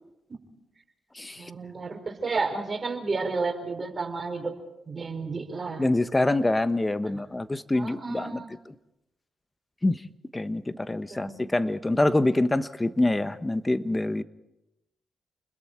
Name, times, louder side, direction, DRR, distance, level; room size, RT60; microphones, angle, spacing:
voice 1, 1.3-4.6 4.9-5.9 7.0-7.2 7.7-8.5 11.1-11.4, right 4 dB, 40° right, 4 dB, 4.7 m, -32 dB
voice 2, 5.8-8.4 9.8-10.0 10.3-14.2, left 2 dB, 20° left, 13 dB, 1.2 m, -25 dB
29.0 x 21.0 x 4.6 m, 0.90 s
supercardioid pair, 45°, 0 cm